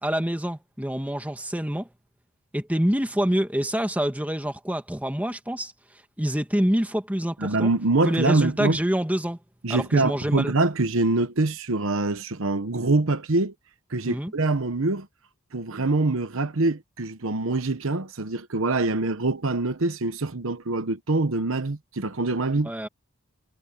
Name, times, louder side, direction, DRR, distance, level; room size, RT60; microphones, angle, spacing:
voice 1, 0.0-1.9 2.5-5.7 6.2-7.7 8.0-9.4 9.7-10.5 14.0-14.3 22.6-22.9, equal, 5° right, 1.7 m, -26 dB
voice 2, 7.4-8.8 9.6-13.5 13.9-15.1 15.5-22.7, right 2 dB, 65° right, 1.1 m, -24 dB
head